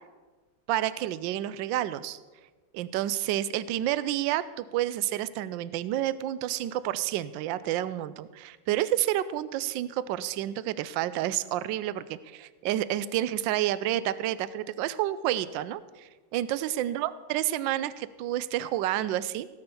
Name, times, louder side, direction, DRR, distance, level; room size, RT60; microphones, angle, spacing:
voice 1, 0.7-2.2 2.7-19.5, right 13 dB, 80° right, 16 dB, 1.3 m, -29 dB
17.0 x 6.8 x 6.9 m, 1.3 s
omnidirectional pair, 2.0 m